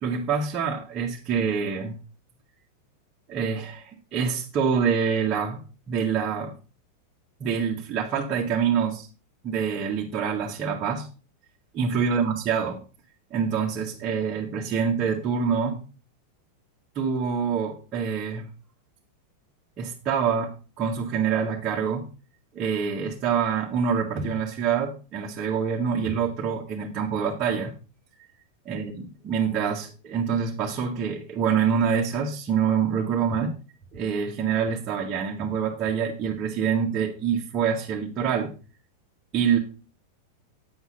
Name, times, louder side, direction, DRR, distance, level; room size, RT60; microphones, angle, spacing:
voice 1, 0.0-2.0 3.3-5.6 5.9-6.5 7.4-9.1 9.4-11.1 11.7-12.8 13.3-15.8 17.0-18.5 19.8-20.5 20.8-22.1 22.5-27.7 28.7-33.6 33.9-38.5 39.3-39.6, right 6 dB, 30° right, -2 dB, 1.9 m, -26 dB
10.0 x 7.9 x 4.3 m, 0.34 s
figure-of-eight pair, 90°, 0 cm